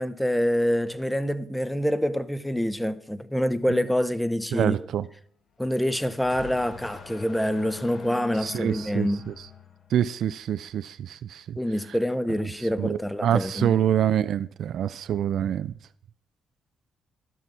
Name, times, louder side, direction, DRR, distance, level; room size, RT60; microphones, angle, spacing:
voice 1, 0.0-4.8 5.6-9.3 11.6-13.7, equal, 5° left, 0.6 m, -26 dB
voice 2, 4.5-5.1 8.4-9.3 9.9-11.6 12.8-15.7, right 10 dB, 70° right, 0.4 m, -26 dB
sound 1, 5.6-10.2, left 6 dB, 55° left, 1.4 m, -44 dB
13.0 x 6.1 x 5.5 m
cardioid pair, 90°, 0 cm